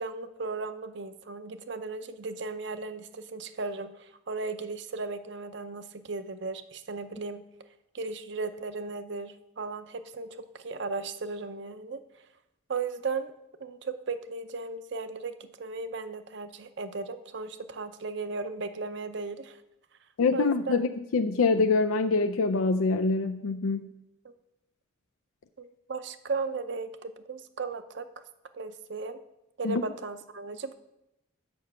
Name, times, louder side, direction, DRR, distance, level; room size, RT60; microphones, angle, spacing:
voice 1, 0.0-7.4 7.9-12.0 12.7-13.3 13.6-19.6 20.3-20.5 24.2-24.3 25.6-28.2 28.5-29.2 29.6-30.7, right 4 dB, 55° right, 11 dB, 0.6 m, -36 dB
voice 2, 20.2-23.8 29.6-29.8, left 4 dB, 90° left, 6 dB, 0.4 m, -25 dB
6.9 x 5.7 x 7.5 m, 0.90 s
head